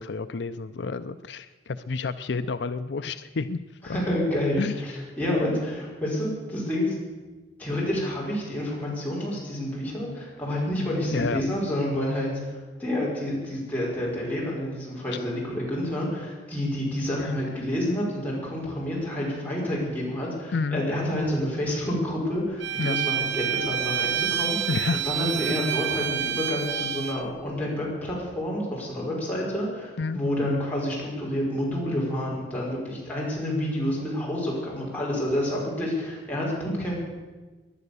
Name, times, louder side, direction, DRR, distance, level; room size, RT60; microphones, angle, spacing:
voice 1, 0.0-3.6 3.9-4.0 4.6-4.8 11.1-11.4 17.2-17.3 20.5-20.8 22.8-23.0 24.7-25.0 30.0-30.2, left 4 dB, 70° left, 11 dB, 0.5 m, -29 dB
voice 2, 3.8-6.9 7.6-37.0, left 1 dB, 10° left, -5 dB, 5.5 m, -29 dB
Bowed string instrument, 22.6-27.2, right 9 dB, 80° right, 1.1 m, -28 dB
19.0 x 11.0 x 6.9 m, 1.3 s
head